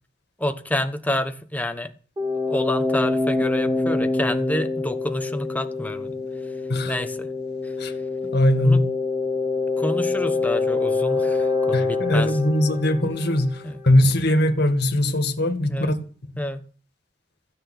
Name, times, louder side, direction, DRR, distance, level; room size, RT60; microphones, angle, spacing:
voice 1, 0.4-1.9 2.5-6.2 6.8-7.3 7.6-7.7 8.6-8.8 9.8-12.3 12.7-12.8 13.6-13.8 15.7-15.9 16.4-16.6, left 1 dB, 10° left, 1.1 m, -28 dB
sound 1, 2.2-13.8, left 3 dB, 20° right, 3.5 m, -25 dB
voice 2, 8.3-8.9 11.7-16.0, left 1 dB, 60° left, 2.1 m, -20 dB
15.0 x 6.7 x 9.3 m
head